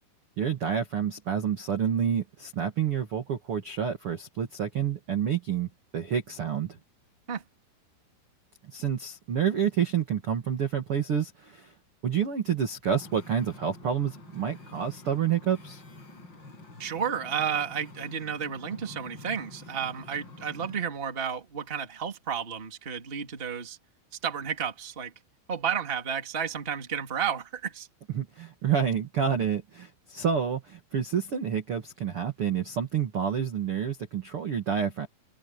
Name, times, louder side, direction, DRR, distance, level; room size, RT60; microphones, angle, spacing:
voice 1, 0.4-6.8 8.6-11.7 12.0-15.8 28.1-35.1, right 8 dB, 50° right, 1.7 m, -28 dB
Wind / Ocean, 12.9-20.8, left 2 dB, 25° left, 6.4 m, -48 dB
voice 2, 16.8-23.8 24.2-25.1 25.5-27.9, right 7 dB, 20° right, 1.7 m, -32 dB
omnidirectional pair, 5.6 m